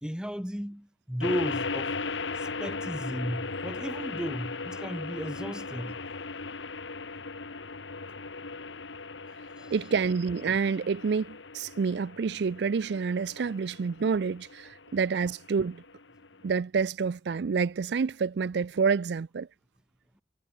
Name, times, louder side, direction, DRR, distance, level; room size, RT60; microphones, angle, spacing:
voice 1, 0.0-2.0 2.4-6.0 9.6-9.7, equal, 5° right, 1.9 m, -35 dB
sound 1, 1.2-16.5, left 4 dB, 90° left, 1.7 m, -38 dB
voice 2, 9.7-15.8 16.4-19.5, right 5 dB, 65° right, 0.4 m, -28 dB
head